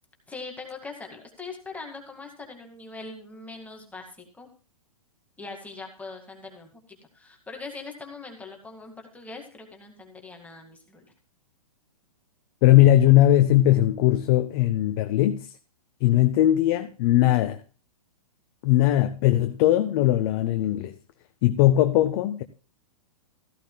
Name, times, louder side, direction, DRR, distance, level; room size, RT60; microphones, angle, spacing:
voice 1, 0.3-4.5 5.4-11.1, left 3 dB, 10° left, 2.0 m, -41 dB
voice 2, 12.6-15.5 16.0-17.6 18.6-20.9 21.4-22.4, left 14 dB, 40° left, 0.8 m, -19 dB
14.5 x 13.0 x 2.3 m
hypercardioid pair, 125°, 18 cm